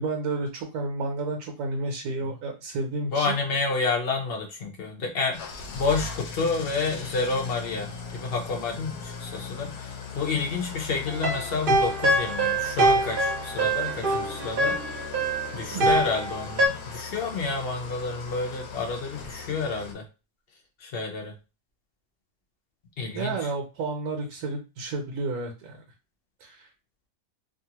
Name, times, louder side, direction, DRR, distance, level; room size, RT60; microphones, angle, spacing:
voice 1, 0.0-3.4 15.7-16.0 23.1-25.8 26.4-26.7, right 3 dB, 75° right, 1 dB, 1.1 m, -31 dB
voice 2, 3.1-14.8 15.5-20.0 20.8-21.3 23.0-23.5, left 4 dB, 55° left, 2 dB, 0.7 m, -29 dB
Engine starting / Idling, 5.3-19.9, left 5 dB, 80° left, 1.1 m, -39 dB
sound 1, 11.1-16.7, right 2 dB, 50° right, 0.7 m, -24 dB
2.6 x 2.5 x 2.8 m, 0.29 s
omnidirectional pair, 1.6 m